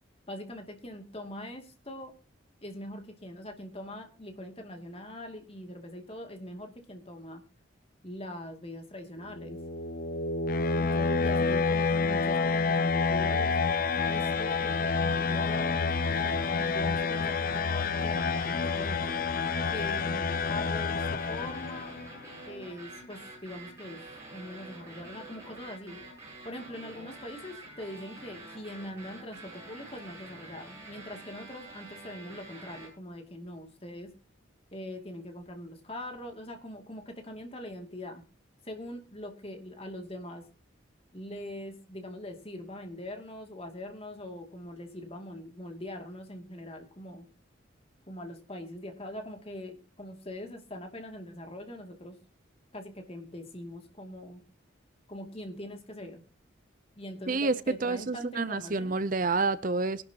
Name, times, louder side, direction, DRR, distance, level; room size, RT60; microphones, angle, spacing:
voice 1, 0.3-2.1 2.6-7.4 8.0-9.6 10.7-13.7 14.1-19.2 19.7-22.0 22.4-24.0 24.3-26.0 26.4-34.1 34.7-38.2 38.6-40.4 41.1-47.3 48.1-52.2 52.7-54.4 55.1-56.2 57.0-59.0, left 1 dB, 30° left, 4 dB, 2.5 m, -42 dB
sound 1, 9.2-22.1, left 4 dB, 45° left, 0.5 m, -28 dB
sound 2, 14.0-32.9, right 2 dB, 15° right, 7.4 m, -47 dB
voice 2, 57.3-60.0, right 3 dB, 45° right, 15 dB, 0.6 m, -29 dB
21.5 x 11.5 x 2.9 m, 0.31 s
head